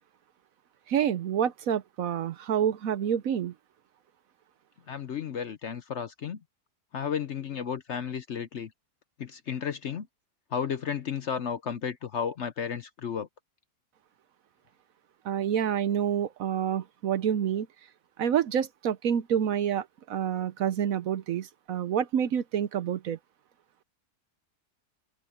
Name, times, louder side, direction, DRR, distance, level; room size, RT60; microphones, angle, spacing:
voice 1, 0.9-3.5 15.2-17.7 18.2-23.2, right 9 dB, 65° right, 1.1 m, -28 dB
voice 2, 4.9-6.4 6.9-8.7 9.2-10.1 10.5-13.3, left 7 dB, 55° left, 0.9 m, -33 dB
omnidirectional pair, 1.7 m